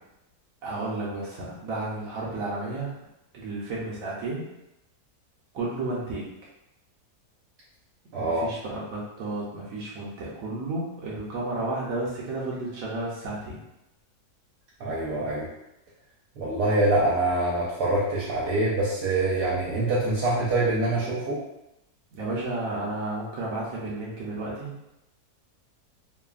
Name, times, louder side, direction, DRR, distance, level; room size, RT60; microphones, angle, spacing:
voice 1, 0.6-2.9 3.3-4.4 5.5-6.3 8.1-13.6 22.1-24.7, right 2 dB, 65° right, -6 dB, 1.0 m, -32 dB
voice 2, 8.1-8.5 14.8-15.4 16.4-21.4, right 2 dB, 85° right, -7 dB, 1.2 m, -25 dB
3.2 x 2.2 x 2.3 m, 0.88 s
omnidirectional pair, 1.7 m